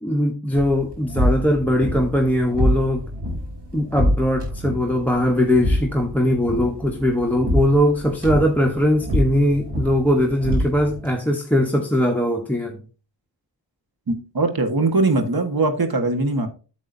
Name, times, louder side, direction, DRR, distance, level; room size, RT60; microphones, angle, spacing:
voice 1, 0.0-3.1 3.7-12.8, equal, 5° left, 4 dB, 1.0 m, -20 dB
sound 1, 0.6-11.1, equal, 70° right, 3.3 m, -26 dB
voice 2, 14.1-16.5, right 3 dB, 55° right, 6 dB, 1.6 m, -21 dB
9.1 x 7.0 x 2.7 m, 0.35 s
cardioid pair, 50°, 43 cm